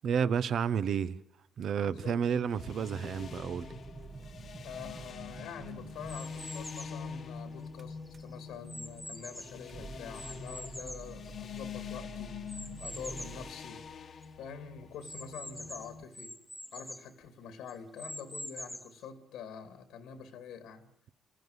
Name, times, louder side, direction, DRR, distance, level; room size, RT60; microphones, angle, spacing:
voice 1, 0.0-1.2 1.6-3.7, right 7 dB, 65° right, 0.9 m, -31 dB
voice 2, 1.8-2.6 4.6-13.9 14.4-16.4 16.7-20.9, left 7 dB, 90° left, 2.5 m, -46 dB
sound 1, 2.4-16.0, left 6 dB, 55° left, 1.3 m, -45 dB
sound 2, 3.1-13.5, right 4 dB, 35° right, 1.1 m, -49 dB
sound 3, 6.1-7.0 7.7-9.7 10.1-11.8 12.5-13.4 13.9-14.0 14.2-14.3 15.0-17.1 17.7-19.0, left 1 dB, 5° left, 1.0 m, -45 dB
26.5 x 15.0 x 9.7 m
cardioid pair, 90°, 0 cm